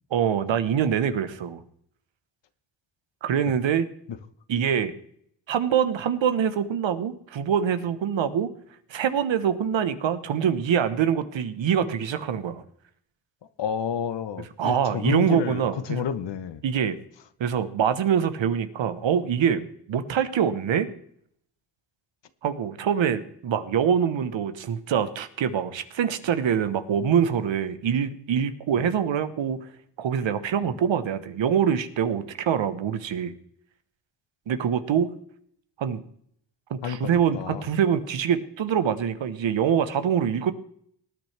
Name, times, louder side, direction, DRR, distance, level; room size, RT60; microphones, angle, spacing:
voice 1, 0.1-1.6 3.2-3.9 4.5-4.9 5.5-8.5 8.9-12.6 14.6-16.0 16.6-17.0 17.4-20.9 22.4-29.7 30.0-33.3 34.5-35.1 35.8-36.0 36.7-40.5, right 8 dB, 70° right, 1.2 m, -24 dB
voice 2, 13.6-16.6 28.7-28.9 30.6-30.8 36.8-37.7, left 8 dB, 60° left, 1.1 m, -30 dB
19.0 x 9.2 x 3.4 m
cardioid pair, 60°, 47 cm